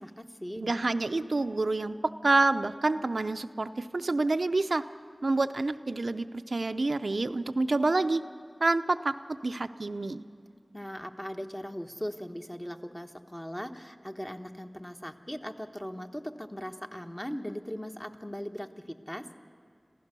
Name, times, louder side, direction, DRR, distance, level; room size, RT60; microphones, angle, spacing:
voice 1, 0.0-0.8 10.7-19.3, equal, 15° left, 5 dB, 1.2 m, -39 dB
voice 2, 0.6-4.8 5.2-8.2 8.6-10.2, right 2 dB, 85° right, 10 dB, 0.5 m, -28 dB
27.0 x 15.0 x 6.8 m, 2.3 s
wide cardioid pair, 40°, 0 cm